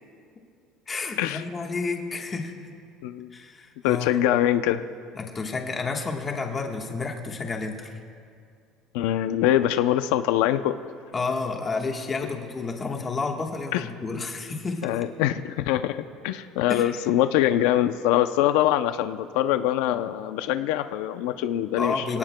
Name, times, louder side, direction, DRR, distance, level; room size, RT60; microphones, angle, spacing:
voice 1, 0.9-2.7 3.3-4.1 5.1-8.0 11.1-15.0 16.7-16.9 21.8-22.2, left 4 dB, 20° left, 2 dB, 1.3 m, -30 dB
voice 2, 3.0-3.3 3.8-4.8 8.9-10.8 13.7-13.8 14.8-22.2, left 12 dB, 90° left, 10 dB, 0.5 m, -23 dB
26.5 x 18.0 x 2.2 m, 2.3 s
cardioid pair, 165°, 0 cm